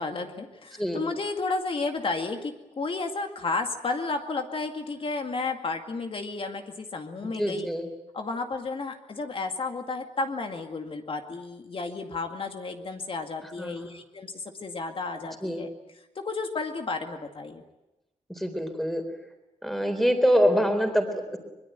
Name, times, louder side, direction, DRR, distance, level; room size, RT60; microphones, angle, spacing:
voice 1, 0.0-7.7 8.1-15.7 16.2-17.6, left 3 dB, 45° left, 5 dB, 2.2 m, -32 dB
voice 2, 7.4-7.9 13.6-13.9 15.4-15.6 18.4-19.0 19.6-21.4, equal, ahead, 6 dB, 4.0 m, -25 dB
24.0 x 22.5 x 9.3 m, 0.95 s
wide cardioid pair, 165°, 13 cm